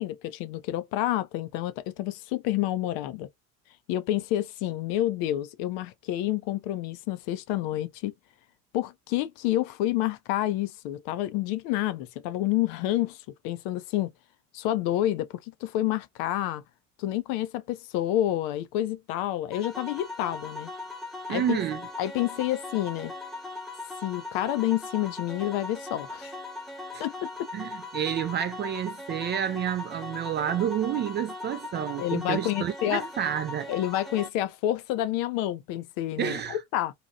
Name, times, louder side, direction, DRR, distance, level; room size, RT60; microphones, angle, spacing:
voice 1, 0.0-3.3 3.9-8.1 8.7-14.1 14.5-16.6 17.0-20.7 21.3-21.6 22.0-23.1 24.0-26.4 27.0-27.5 32.0-33.0 33.7-36.9, left 13 dB, 60° left, 0.5 m, -29 dB
sound 1, 19.5-34.3, left 2 dB, ahead, 0.8 m, -39 dB
voice 2, 21.3-21.9 26.9-27.0 27.5-33.7 36.2-36.6, right 10 dB, 30° right, 0.3 m, -29 dB
2.7 x 2.3 x 2.6 m
hypercardioid pair, 60°, 39 cm